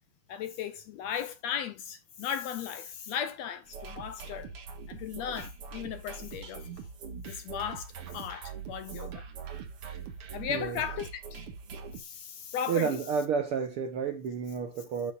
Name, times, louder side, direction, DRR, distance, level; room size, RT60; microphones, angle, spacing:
voice 1, 0.3-4.5 4.9-6.7 7.3-9.3 10.3-11.5 12.0-13.0, left 8 dB, 70° left, 1.7 m, -36 dB
sound 1, 3.7-12.0, right 6 dB, 50° right, 2.2 m, -42 dB
voice 2, 10.5-10.8 12.7-15.1, right 6 dB, 70° right, 1.4 m, -30 dB
12.5 x 6.8 x 2.5 m
omnidirectional pair, 3.6 m